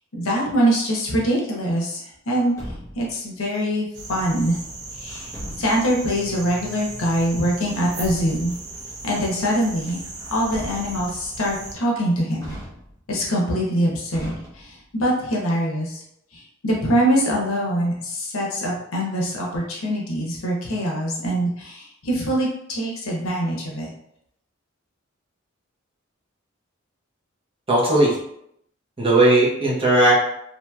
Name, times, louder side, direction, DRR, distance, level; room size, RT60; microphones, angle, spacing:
voice 1, 0.2-2.0 2.3-2.5 3.0-4.6 5.0-5.3 5.6-8.5 9.0-10.0 10.3-12.6 13.1-14.3 14.9-15.9 16.6-23.9, equal, 85° left, -2 dB, 0.8 m, -23 dB
Truck, 2.3-3.2 5.1-5.9 7.6-8.6 10.1-11.2 12.4-13.2 14.1-15.0, equal, 15° left, 0.7 m, -38 dB
sound 1, 3.9-11.8, right 2 dB, 55° right, 0.6 m, -37 dB
voice 2, 27.7-28.2 29.0-30.1, right 1 dB, 25° right, -6 dB, 0.9 m, -17 dB
2.9 x 2.7 x 2.2 m, 0.76 s
head